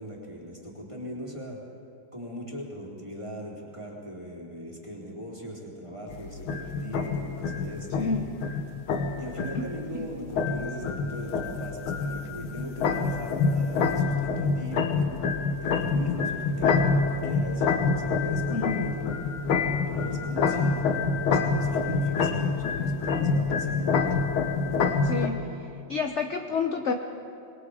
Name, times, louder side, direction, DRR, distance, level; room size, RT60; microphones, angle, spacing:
voice 1, 0.0-1.6 2.1-8.3 9.2-15.2 15.6-19.1 19.9-20.9 21.3-24.2, equal, 15° right, -3 dB, 3.5 m, -39 dB
sound 1, 6.1-25.3, left 4 dB, 70° left, 2.0 m, -27 dB
voice 2, 8.0-8.3 9.5-9.6 9.9-10.1 18.5-18.9 25.0-25.5 25.9-26.9, left 5 dB, 55° left, 4 dB, 0.8 m, -29 dB
26.5 x 21.5 x 4.9 m, 2.6 s
omnidirectional pair, 2.4 m